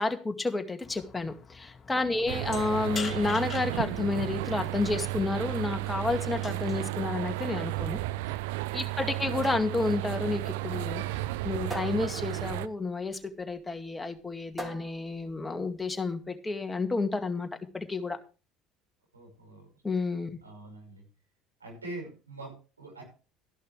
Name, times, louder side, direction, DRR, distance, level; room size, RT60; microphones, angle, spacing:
voice 1, 0.0-8.0 8.7-17.5 17.7-18.2 19.8-20.4, left 3 dB, 15° left, 6 dB, 2.1 m, -31 dB
sound 1, 0.8-6.8, left 5 dB, 35° left, 2.5 m, -44 dB
sound 2, 2.3-12.7, right 18 dB, 70° right, 0.5 m, -33 dB
sound 3, 6.4-16.1, equal, 15° right, 4.0 m, -47 dB
voice 2, 19.1-19.7 20.4-21.0 21.6-23.0, right 2 dB, 90° right, 0 dB, 5.7 m, -44 dB
14.0 x 11.0 x 3.3 m, 0.34 s
figure-of-eight pair, 60°, 0 cm